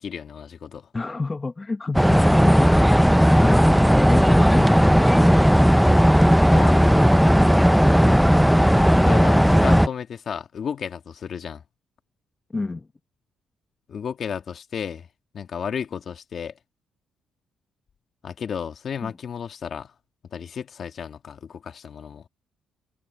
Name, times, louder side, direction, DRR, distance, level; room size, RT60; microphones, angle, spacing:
voice 1, 0.0-0.9 3.9-4.1 6.5-7.2 8.5-11.6 13.9-15.1 15.3-16.5 18.2-19.9 20.3-22.3, left 7 dB, 55° left, 2.1 m, -33 dB
voice 2, 0.9-3.1 3.4-3.6 4.1-5.4 8.0-8.3 9.3-9.7 12.5-12.9 19.0-19.1, left 3 dB, 25° left, 0.8 m, -29 dB
sound 1, 1.9-9.9, equal, ahead, 0.3 m, -16 dB
cardioid pair, 90°, 0 cm